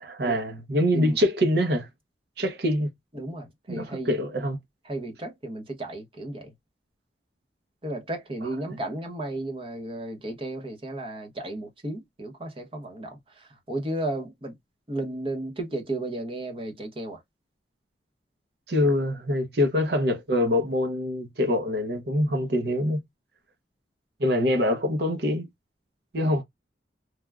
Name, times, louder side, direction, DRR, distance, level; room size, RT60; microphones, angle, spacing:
voice 1, 0.0-1.9 2.4-2.9 3.7-4.6 18.7-23.0 24.2-25.5 26.1-26.4, left 1 dB, 60° right, 0.8 m, -24 dB
voice 2, 3.1-4.2 4.8-6.5 7.8-14.6 14.9-17.2 26.2-26.3, right 1 dB, 30° right, 0.8 m, -34 dB
3.4 x 2.2 x 2.3 m
head